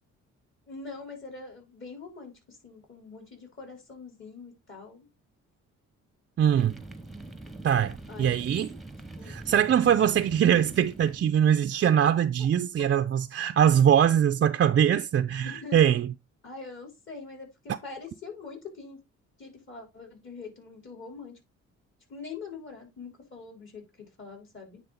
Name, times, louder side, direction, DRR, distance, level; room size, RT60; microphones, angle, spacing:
voice 1, 0.7-5.1 8.1-8.4 9.2-9.4 11.7-11.8 15.4-15.8 16.4-19.0 19.4-21.4 22.1-24.8, left 4 dB, 40° left, 3.6 m, -43 dB
voice 2, 6.4-6.8 7.6-8.7 9.2-16.1, right 9 dB, 40° right, 0.5 m, -22 dB
sound 1, 6.5-11.6, right 2 dB, ahead, 1.0 m, -44 dB
9.4 x 3.7 x 3.8 m
cardioid pair, 90°, 30 cm